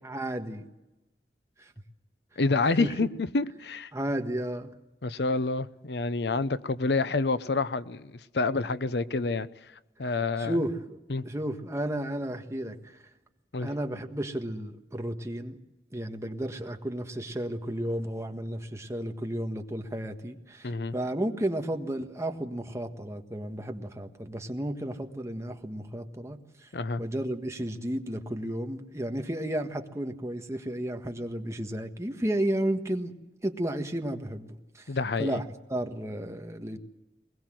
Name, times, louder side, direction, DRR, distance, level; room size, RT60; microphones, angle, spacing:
voice 1, 0.0-0.7 1.6-1.7 2.8-2.9 3.9-4.7 10.4-11.0 11.2-13.0 13.6-15.6 15.9-26.7 27.0-33.1 33.4-34.9 35.2-35.4 35.7-36.8, right 1 dB, 15° right, 1.5 m, -33 dB
voice 2, 2.4-3.1 3.3-3.9 5.0-9.5 10.0-10.5 11.1-11.2 13.5-13.7 20.6-20.9 26.7-27.0 34.9-35.4, left 3 dB, 70° left, 0.7 m, -28 dB
22.5 x 21.0 x 7.7 m
head